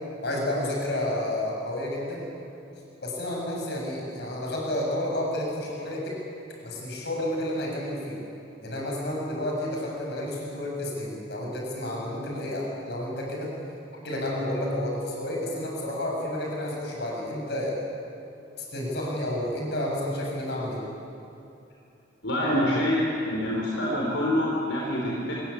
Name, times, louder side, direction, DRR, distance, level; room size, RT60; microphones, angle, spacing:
voice 1, 0.2-2.3 3.0-6.1 6.6-8.2 8.6-13.5 14.0-17.8 18.6-20.8, left 1 dB, 55° left, -2 dB, 7.9 m, -30 dB
voice 2, 22.2-25.3, left 1 dB, 75° left, -4 dB, 4.5 m, -26 dB
26.5 x 21.5 x 8.8 m, 2.7 s
head